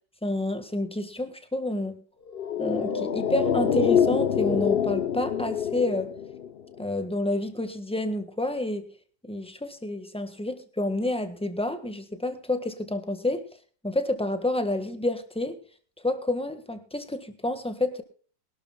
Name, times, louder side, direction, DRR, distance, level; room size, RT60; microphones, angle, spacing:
voice 1, 0.2-2.0 2.6-6.1 6.8-8.8 9.2-13.5 13.8-15.6 16.0-18.0, left 1 dB, 5° left, 8 dB, 1.2 m, -29 dB
sound 1, 2.3-6.9 7.1-7.2, left 8 dB, 60° left, 0.6 m, -25 dB
23.5 x 12.0 x 2.3 m, 0.41 s
omnidirectional pair, 2.0 m